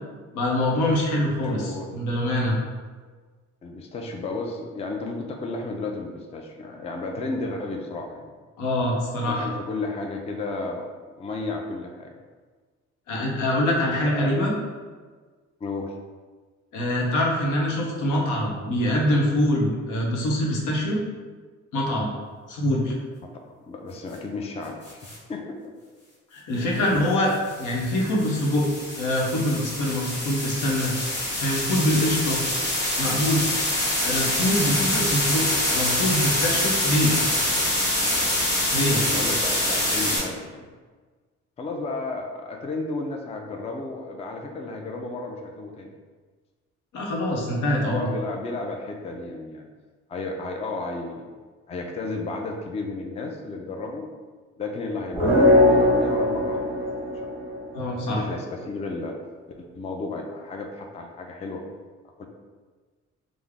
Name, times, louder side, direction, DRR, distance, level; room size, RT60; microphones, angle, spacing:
voice 1, 0.3-2.6 8.6-9.5 13.1-14.5 16.7-21.0 21.7-22.1 22.5-22.9 26.3-28.7 29.0-30.9 31.4-32.4 33.0-33.5 34.0-35.5 35.7-37.1 38.7-39.0 46.9-48.1 57.7-58.2, left 1 dB, 85° left, -2 dB, 0.8 m, -24 dB
voice 2, 1.4-2.0 3.6-8.3 9.3-12.1 13.9-14.4 15.6-15.9 23.2-25.7 26.5-26.8 38.8-40.7 41.6-45.9 47.8-49.7 50.1-51.3 51.7-54.1 54.6-56.7 58.1-59.1 59.6-61.6 62.2-62.3, left 3 dB, 20° left, 2 dB, 0.4 m, -33 dB
sound 1, 24.8-25.2 27.3-40.2, left 1 dB, 35° left, 1.4 m, -25 dB
sound 2, 55.1-57.9, left 1 dB, 10° right, 0.8 m, -20 dB
3.5 x 2.0 x 3.4 m, 1.4 s
cardioid pair, 90°, 30 cm